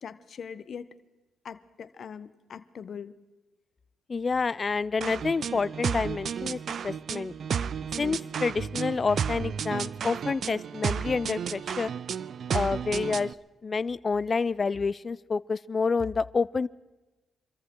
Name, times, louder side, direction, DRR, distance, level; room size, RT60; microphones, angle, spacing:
voice 1, 0.0-0.9 1.4-3.2, left 7 dB, 60° left, 14 dB, 1.0 m, -41 dB
voice 2, 4.1-7.3 8.0-11.9 12.5-13.3 13.6-16.7, left 4 dB, 40° left, 19 dB, 0.5 m, -28 dB
sound 1, 5.0-13.3, right 7 dB, 65° right, 0.5 m, -32 dB
26.5 x 14.5 x 3.8 m, 1.1 s
cardioid pair, 70°, 0 cm